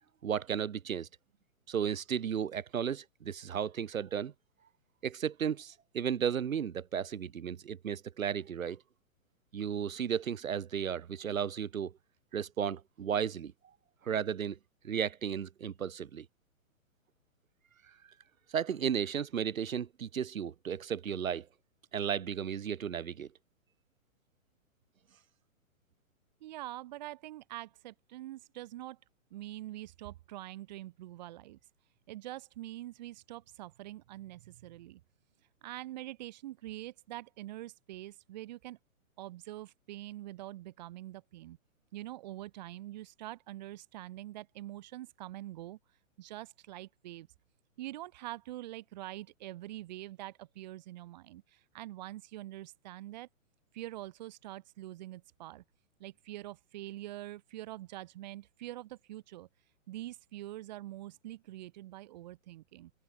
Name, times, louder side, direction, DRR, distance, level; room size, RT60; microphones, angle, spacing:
voice 1, 0.2-1.1 1.7-4.3 5.0-8.8 9.5-11.9 12.3-13.5 14.0-14.6 14.8-16.2 18.5-21.5 21.9-23.3, right 8 dB, 75° right, 3.2 m, -34 dB
voice 2, 26.4-29.0 29.3-31.6 32.1-35.0 35.6-38.8 39.2-41.6 41.9-45.8 46.2-47.3 47.8-53.3 53.7-55.6 56.0-59.5 59.9-62.9, right 15 dB, 30° right, 2.3 m, -45 dB
hypercardioid pair, 170°, 41 cm